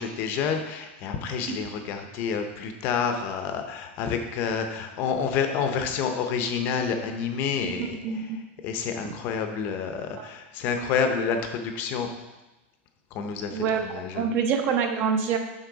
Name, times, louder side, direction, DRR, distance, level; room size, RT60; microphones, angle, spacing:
voice 1, 0.0-7.9 8.6-12.1 13.1-14.3, left 6 dB, 30° left, 6 dB, 0.7 m, -28 dB
voice 2, 7.6-8.4 10.2-10.3 13.5-15.4, right 6 dB, 30° right, 5 dB, 0.7 m, -27 dB
8.2 x 5.4 x 3.9 m, 1.0 s
supercardioid pair, 175°, 7 cm